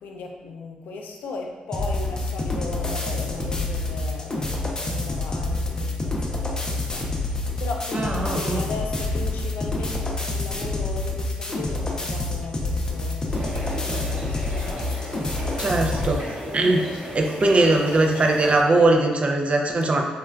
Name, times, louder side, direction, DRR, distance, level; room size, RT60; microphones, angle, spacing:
voice 1, 0.0-16.7 17.1-17.4, left 3 dB, 80° left, 1 dB, 0.3 m, -37 dB
sound 1, 1.7-16.2, left 2 dB, 25° left, 0.5 m, -27 dB
voice 2, 7.9-8.6 15.6-16.2 16.5-16.8 17.1-20.0, right 2 dB, 40° right, 2 dB, 0.4 m, -20 dB
sound 2, 13.3-18.6, right 1 dB, 65° right, 1.3 m, -35 dB
3.1 x 2.2 x 2.2 m, 1.3 s
supercardioid pair, 55°, 3 cm